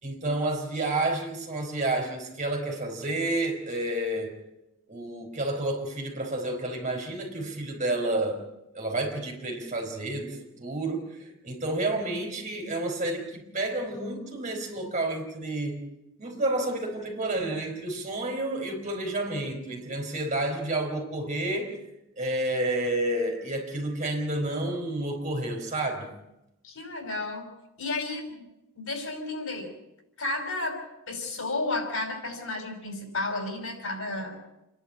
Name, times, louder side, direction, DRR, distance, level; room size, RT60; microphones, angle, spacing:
voice 1, 0.0-4.3 4.9-8.5 8.7-15.8 16.2-21.8 22.2-26.1, right 2 dB, 35° right, 1 dB, 4.5 m, -30 dB
voice 2, 26.6-27.5 27.8-28.4 28.8-29.7 30.2-30.8 31.1-34.4, left 2 dB, 90° left, 4 dB, 5.5 m, -32 dB
28.5 x 11.0 x 8.7 m, 0.90 s
head